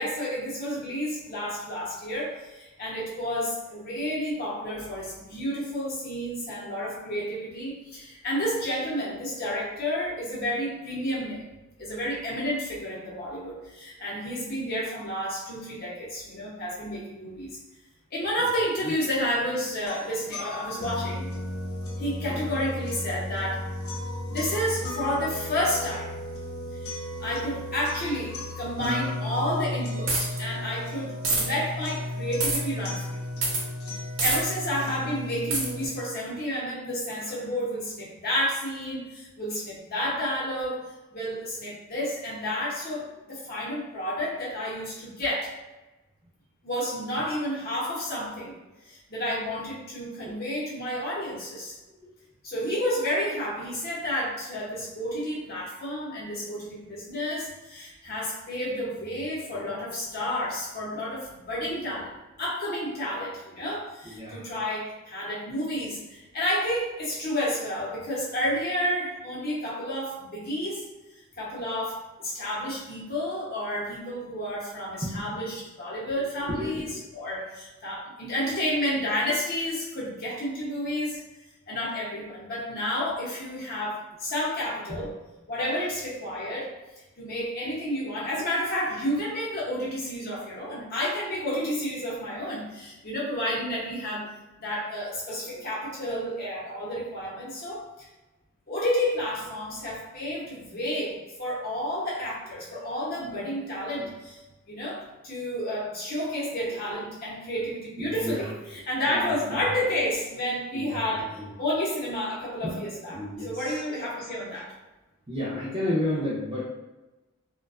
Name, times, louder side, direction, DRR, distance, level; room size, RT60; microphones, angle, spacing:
voice 1, 0.0-11.5 11.8-17.5 18.1-21.2 22.0-23.6 24.3-26.1 26.7-33.2 34.2-40.8 41.1-45.5 46.6-48.5 48.8-51.8 52.4-70.8 71.4-81.2 81.7-85.1 85.5-86.7 87.2-94.3 94.6-97.8 98.7-104.4 104.7-111.3 111.6-113.2 113.4-114.7, equal, 45° left, -6 dB, 0.7 m, -31 dB
sound 1, 19.9-35.9, left 1 dB, 80° left, 0.5 m, -34 dB
sound 2, 30.1-30.4 31.2-31.4 32.4-32.6 33.4-33.6 34.2-34.4 35.5-35.7, right 3 dB, 60° right, 0.7 m, -25 dB
voice 2, 64.0-64.4 75.0-75.2 76.5-77.0 84.9-85.1 106.9-107.0 108.0-108.5 109.0-109.6 110.7-111.5 112.6-113.8 114.5-114.6 115.3-116.7, left 1 dB, 25° right, -9 dB, 0.5 m, -33 dB
2.4 x 2.2 x 2.3 m, 1.1 s
head